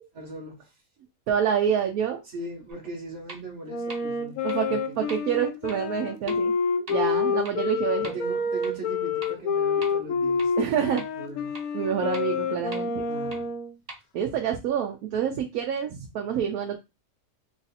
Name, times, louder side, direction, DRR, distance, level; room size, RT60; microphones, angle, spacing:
voice 1, 0.1-0.7 2.3-4.4 4.7-5.0 6.9-7.4 8.0-11.5 13.0-13.5, right 2 dB, 60° right, -2 dB, 1.2 m, -40 dB
voice 2, 1.3-2.2 4.4-6.5 6.9-8.1 10.6-11.0 11.7-13.0 14.1-16.8, right 8 dB, 85° right, 3 dB, 1.1 m, -27 dB
sound 1, 2.7-2.8 3.3-3.4 3.9-4.0 4.5-4.6 5.1-5.2 5.7-5.8 6.3-6.4 6.9-7.0 7.4-7.5 8.0-8.1 8.6-8.7 9.2-9.3 9.8-9.9 10.4-10.5 11.0-11.1 11.5-11.6 12.1-12.2 12.7-12.8 13.3-13.4 13.9-14.0, right 2 dB, 35° right, 0.7 m, -40 dB
Wind instrument woodwind instrument, 3.7-13.7, left 5 dB, 75° left, 1.0 m, -28 dB
3.1 x 2.5 x 4.0 m, 0.24 s
omnidirectional pair, 1.5 m